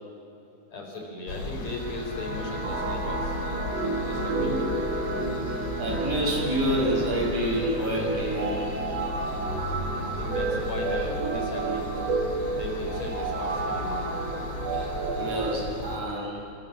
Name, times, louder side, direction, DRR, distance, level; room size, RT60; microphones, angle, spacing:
voice 1, 0.7-3.4 4.1-4.8 9.9-12.0 12.5-14.2, left 2 dB, 65° left, 2 dB, 5.6 m, -36 dB
sound 1, 1.3-16.0, left 1 dB, 40° left, 2.6 m, -36 dB
sound 2, 1.5-12.5, right 1 dB, 25° right, 2.4 m, -37 dB
sound 3, 2.6-15.6, right 3 dB, 60° right, 3.3 m, -32 dB
voice 2, 4.2-4.6 5.8-8.8 14.7-16.4, equal, 85° right, 0 dB, 7.4 m, -28 dB
27.5 x 25.5 x 7.3 m, 2.8 s
omnidirectional pair, 3.3 m